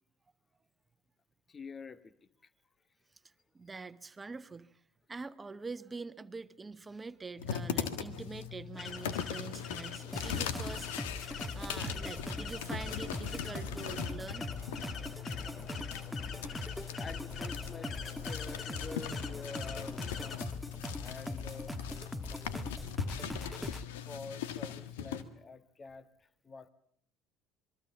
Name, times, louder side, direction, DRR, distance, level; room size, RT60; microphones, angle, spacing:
voice 1, 1.5-2.5 17.0-21.7 24.0-26.7, left 4 dB, 30° left, 14 dB, 1.6 m, -48 dB
voice 2, 3.5-4.8 5.1-14.5, right 4 dB, 25° right, 13 dB, 1.3 m, -45 dB
sound 1, 7.4-25.2, left 8 dB, 80° left, 1.7 m, -40 dB
sound 2, 8.7-20.5, left 6 dB, 55° left, 2.6 m, -46 dB
sound 3, 10.1-23.8, left 1 dB, 5° left, 1.5 m, -41 dB
26.5 x 22.0 x 7.3 m, 0.66 s
hypercardioid pair, 65°, 0 cm